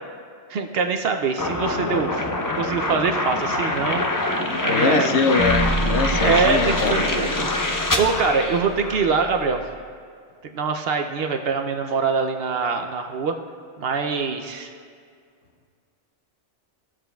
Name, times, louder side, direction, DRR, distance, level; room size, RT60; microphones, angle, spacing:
voice 1, 0.5-2.3 2.6-4.0 4.6-5.2 6.2-7.5 8.0-9.6 10.5-13.4 13.8-14.7, right 5 dB, 65° right, 5 dB, 0.7 m, -23 dB
sound 1, 1.4-9.2, left 2 dB, 25° left, 0.4 m, -25 dB
voice 2, 4.7-7.0, left 4 dB, 75° left, 6 dB, 0.9 m, -23 dB
sound 2, 5.4-9.6, right 1 dB, 50° left, 1.5 m, -29 dB
15.0 x 7.4 x 2.3 m, 2.1 s
omnidirectional pair, 1.2 m